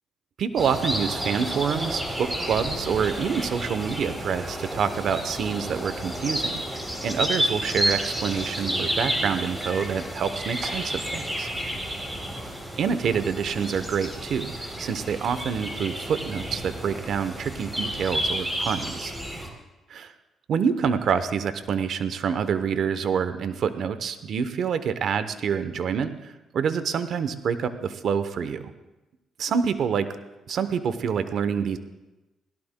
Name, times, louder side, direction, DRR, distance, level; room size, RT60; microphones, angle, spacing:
voice 1, 0.4-11.5 12.8-19.1 19.9-20.1 20.5-28.7 29.4-30.1 30.5-31.8, right 7 dB, 65° right, 11 dB, 0.8 m, -27 dB
sound 1, 0.6-19.5, equal, 10° right, 3.3 m, -31 dB
20.5 x 17.0 x 2.2 m, 1.1 s
cardioid pair, 90°, 0 cm